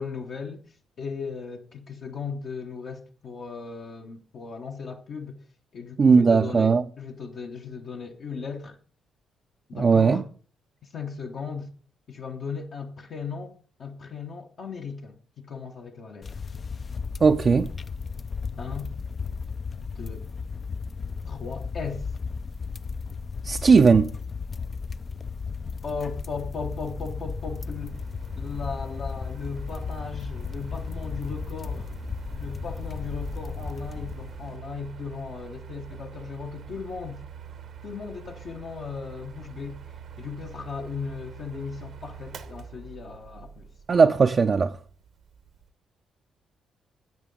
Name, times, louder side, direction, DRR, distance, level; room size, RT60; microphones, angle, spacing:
voice 1, 0.0-5.4 5.7-8.8 9.7-10.2 10.8-11.7 12.1-16.4 18.6-18.9 19.9-20.3 21.2-22.1 25.8-28.0 28.4-31.9 32.3-37.2 37.8-39.8 40.2-43.7, left 5 dB, 60° left, 0.9 m, -37 dB
voice 2, 6.0-6.8 9.7-10.2 17.2-17.7 23.4-24.1 43.9-44.7, right 5 dB, 45° right, 0.5 m, -18 dB
sound 1, 16.2-34.6, left 5 dB, 40° left, 0.4 m, -35 dB
Mechanical fan, 26.0-45.7, right 7 dB, 60° right, 0.9 m, -45 dB
10.5 x 8.2 x 3.8 m
hypercardioid pair, 45°, 0 cm